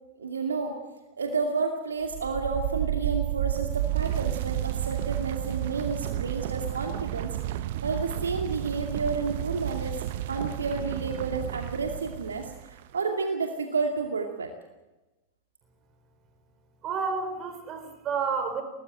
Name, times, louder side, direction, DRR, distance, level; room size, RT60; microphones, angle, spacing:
voice 1, 0.2-0.8 1.2-7.4 7.8-10.0 10.3-14.5, right 4 dB, 70° right, 4 dB, 2.4 m, -31 dB
sound 1, 2.0-12.8, right 13 dB, 55° right, 0.9 m, -31 dB
voice 2, 16.8-18.6, right 5 dB, 30° right, 7 dB, 5.1 m, -30 dB
23.0 x 19.5 x 7.7 m, 1.1 s
figure-of-eight pair, 90°, 0 cm